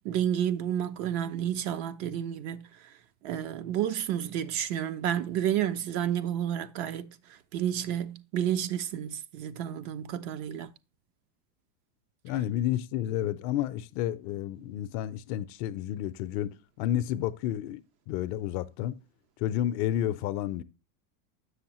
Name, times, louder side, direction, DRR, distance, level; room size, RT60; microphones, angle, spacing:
voice 1, 0.0-2.7 3.2-7.1 7.5-10.7, right 10 dB, 45° right, 0.4 m, -30 dB
voice 2, 12.2-16.5 16.8-17.8 18.1-18.9 19.4-20.6, left 12 dB, 55° left, 0.5 m, -30 dB
7.1 x 6.4 x 2.9 m
supercardioid pair, 125°, 43 cm